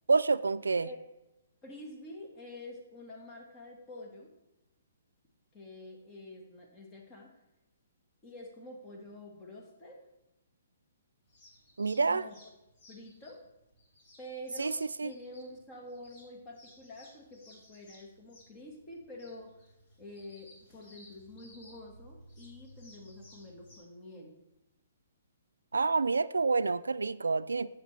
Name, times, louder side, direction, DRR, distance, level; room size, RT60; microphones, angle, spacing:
voice 1, 0.1-0.9 11.8-12.2 14.6-14.7 15.0-15.1 25.7-27.7, right 4 dB, 85° right, 15 dB, 0.3 m, -28 dB
voice 2, 1.6-4.3 5.5-7.3 8.2-10.0 12.1-12.4 12.9-13.5 14.2-19.6 20.0-24.3, left 1 dB, 25° left, 0 dB, 1.7 m, -48 dB
sound 1, 11.2-23.8, left 1 dB, 40° left, 3.0 m, -58 dB
10.0 x 6.9 x 3.3 m, 0.94 s
hypercardioid pair, 135°, 0 cm